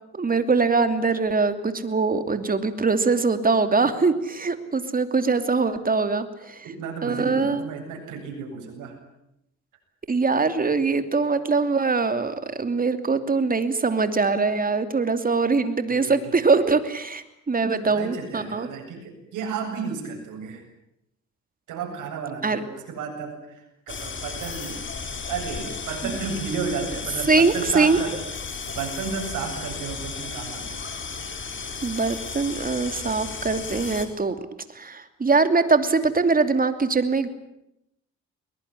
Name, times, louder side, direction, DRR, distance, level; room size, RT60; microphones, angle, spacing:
voice 1, 0.1-6.6 7.0-7.7 10.1-18.7 22.4-22.6 26.0-26.1 27.3-28.0 31.8-34.3 34.7-37.3, right 4 dB, 30° right, 10 dB, 2.8 m, -22 dB
voice 2, 6.6-9.0 15.9-16.5 17.7-20.6 21.7-24.8 25.3-28.2 28.7-30.8, right 5 dB, 85° right, 3 dB, 7.9 m, -33 dB
sound 1, 23.9-34.1, left 5 dB, 40° left, 4.0 m, -34 dB
22.0 x 21.5 x 9.9 m, 0.84 s
cardioid pair, 90°, 30 cm